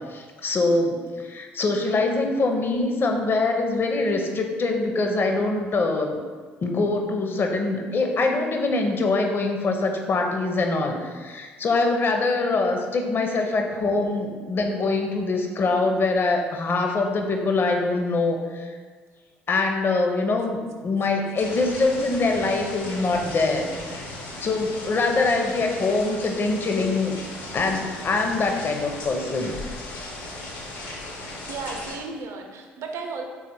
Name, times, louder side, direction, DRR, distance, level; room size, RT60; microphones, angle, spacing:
voice 1, 0.0-6.2 6.6-18.8 19.5-24.1 24.4-27.2 27.5-30.0, left 3 dB, 40° left, 3 dB, 0.6 m, -24 dB
sound 1, 21.4-32.0, left 2 dB, 75° left, 0.8 m, -37 dB
voice 2, 31.5-33.2, right 4 dB, 55° right, 4 dB, 0.5 m, -34 dB
3.7 x 2.4 x 4.2 m, 1.5 s
hypercardioid pair, 55°, 6 cm